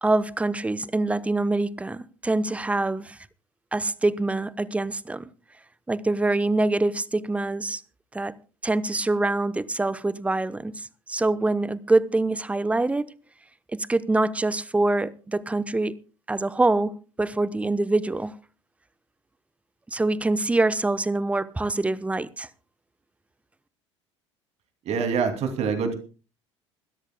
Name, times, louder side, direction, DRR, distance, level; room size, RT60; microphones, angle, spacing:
voice 1, 0.0-3.2 3.7-5.3 5.9-7.8 8.1-8.3 8.6-13.1 13.7-16.0 16.3-18.4 19.9-22.5, right 2 dB, 10° right, 0.8 m, -25 dB
voice 2, 24.8-25.9, right 5 dB, 45° right, 2.7 m, -25 dB
26.5 x 13.0 x 2.2 m
figure-of-eight pair, 65°, 16 cm